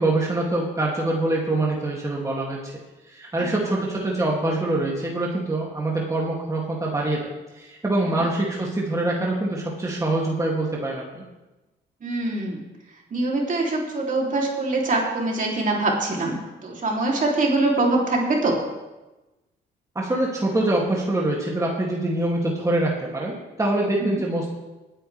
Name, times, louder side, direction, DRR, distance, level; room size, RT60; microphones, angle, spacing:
voice 1, 0.0-2.7 3.1-11.2 19.9-24.5, right 2 dB, 15° right, -3 dB, 2.6 m, -24 dB
voice 2, 12.0-12.6 13.1-18.6 24.0-24.2, right 2 dB, 40° right, -1 dB, 3.2 m, -23 dB
19.0 x 9.9 x 3.5 m, 1.1 s
cardioid pair, 90°, 20 cm